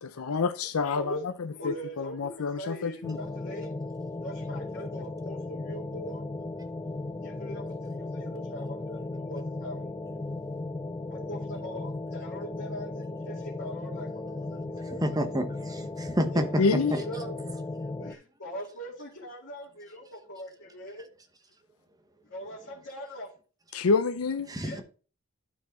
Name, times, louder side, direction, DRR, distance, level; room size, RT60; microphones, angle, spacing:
voice 1, 0.0-3.2 16.6-16.9 23.7-24.5, left 4 dB, 80° left, 0.5 m, -28 dB
voice 2, 0.8-1.3 1.5-3.7 4.2-6.2 7.2-9.9 11.1-14.6 14.9-15.0 16.3-16.6 16.9-17.3 18.0-21.1 22.3-23.3 24.6-24.8, equal, 60° left, 2.4 m, -41 dB
sound 1, 3.0-18.1, left 2 dB, 15° left, 0.5 m, -36 dB
voice 3, 14.9-16.6 16.9-17.0 24.5-24.8, equal, 20° right, 1.0 m, -29 dB
11.5 x 4.8 x 3.7 m
head